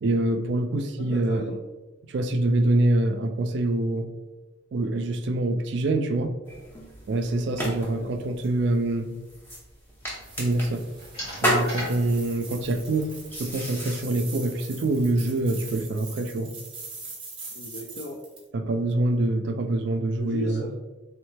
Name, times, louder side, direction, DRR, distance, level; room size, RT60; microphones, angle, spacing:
voice 1, 0.0-1.5 2.0-4.1 4.7-6.4 7.1-9.1 10.4-10.8 11.4-16.5 18.5-20.7, right 2 dB, 55° right, 7 dB, 0.3 m, -25 dB
voice 2, 1.0-1.6 7.8-8.1 17.5-18.2 20.2-20.7, equal, 50° left, 0 dB, 0.4 m, -36 dB
sound 1, 6.4-14.0, equal, 10° left, 0.8 m, -33 dB
sound 2, 10.0-15.8, equal, 25° left, 1.4 m, -43 dB
sound 3, 10.2-18.4, right 3 dB, 25° right, 0.9 m, -43 dB
3.6 x 3.1 x 3.2 m, 1.1 s
head